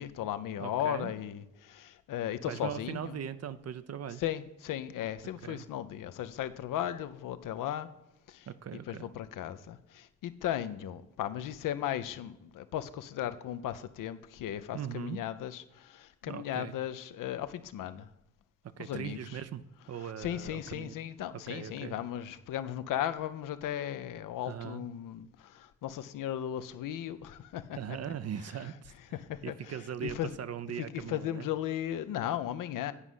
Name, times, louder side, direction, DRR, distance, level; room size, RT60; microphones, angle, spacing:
voice 1, 0.0-3.2 4.2-7.9 8.3-8.5 8.9-18.1 18.8-19.4 20.0-28.0 29.1-30.3 30.8-32.9, left 11 dB, 65° left, 12 dB, 0.6 m, -36 dB
voice 2, 0.6-1.1 2.5-4.2 5.4-5.6 8.5-9.1 14.7-15.2 16.3-16.8 18.8-19.6 19.9-20.9 21.5-22.0 24.5-24.9 27.7-28.9 29.4-31.5, right 8 dB, 45° right, 13 dB, 0.6 m, -39 dB
9.8 x 4.9 x 5.5 m, 0.94 s
hypercardioid pair, 45°, 34 cm